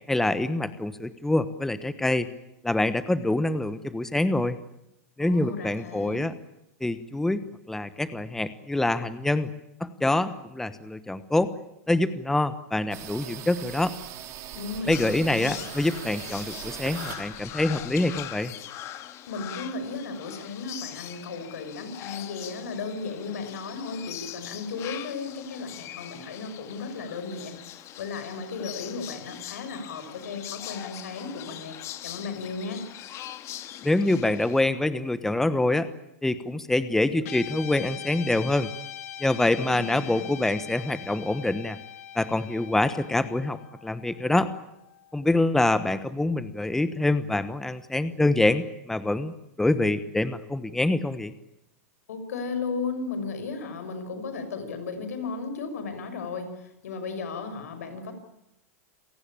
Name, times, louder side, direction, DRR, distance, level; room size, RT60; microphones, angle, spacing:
voice 1, 0.1-2.3 2.6-4.6 5.2-6.3 6.8-9.5 9.8-11.5 11.9-13.9 14.9-18.5 33.8-35.9 36.2-38.7 39.2-41.8 42.1-44.5 45.1-51.3, left 2 dB, 5° left, 13 dB, 1.1 m, -25 dB
voice 2, 5.2-6.2 14.5-15.5 19.3-31.8 32.0-32.8 39.4-40.3 52.1-58.1, left 4 dB, 85° left, 9 dB, 6.3 m, -35 dB
sound 1, 12.9-18.4, right 10 dB, 40° right, 4.3 m, -41 dB
sound 2, 14.9-34.6, left 12 dB, 35° left, 1.8 m, -41 dB
Guitar, 37.2-45.7, left 11 dB, 70° left, 2.7 m, -42 dB
28.0 x 18.0 x 8.8 m, 0.83 s
supercardioid pair, 135°, 8 cm